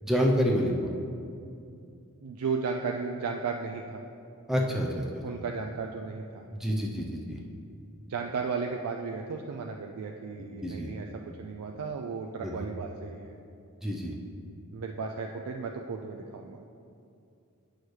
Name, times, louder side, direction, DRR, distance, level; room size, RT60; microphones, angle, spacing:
voice 1, 0.0-0.7 4.5-5.2 6.5-7.4 10.4-10.9 12.4-12.6 13.8-14.1, equal, ahead, -2 dB, 0.5 m, -28 dB
voice 2, 2.2-4.0 5.2-6.5 8.1-13.3 14.7-16.6, right 5 dB, 80° right, 2 dB, 0.4 m, -35 dB
8.3 x 6.3 x 3.2 m, 2.5 s
head